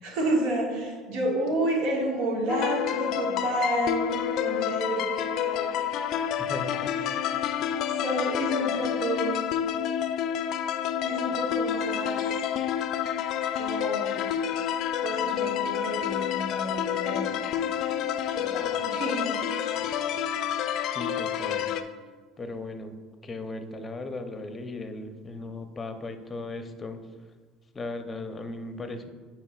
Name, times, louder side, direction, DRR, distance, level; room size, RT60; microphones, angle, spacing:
voice 1, 0.0-5.8 7.0-7.2 7.9-9.5 11.0-12.4 13.5-14.2 15.0-17.3 18.3-19.3 19.7-20.0, right 1 dB, 70° right, -1 dB, 1.7 m, -30 dB
sound 1, 2.5-21.8, left 9 dB, 60° left, 0.4 m, -29 dB
voice 2, 6.4-6.9 20.8-21.7 22.4-22.9 23.2-27.0 27.7-29.1, left 2 dB, 25° left, 7 dB, 0.7 m, -37 dB
9.0 x 4.6 x 2.4 m, 1.4 s
supercardioid pair, 80°, 0 cm